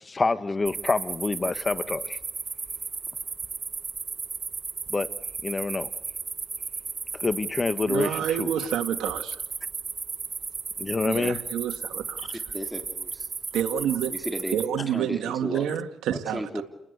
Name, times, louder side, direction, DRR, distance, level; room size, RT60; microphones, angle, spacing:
voice 1, 0.0-2.2 4.9-5.1 5.4-5.9 7.1-8.5 10.8-11.4 14.8-14.9, left 3 dB, 25° left, 1.7 m, -27 dB
sound 1, 0.7-14.7, right 5 dB, 35° right, 1.6 m, -35 dB
voice 2, 7.8-9.4 11.0-12.3 13.5-14.1 14.5-16.6, right 10 dB, 85° right, 2.1 m, -29 dB
voice 3, 12.5-13.3 14.1-14.6 14.9-15.7 16.1-16.6, right 1 dB, 5° right, 3.5 m, -34 dB
29.5 x 20.0 x 8.2 m
cardioid pair, 90°, 0 cm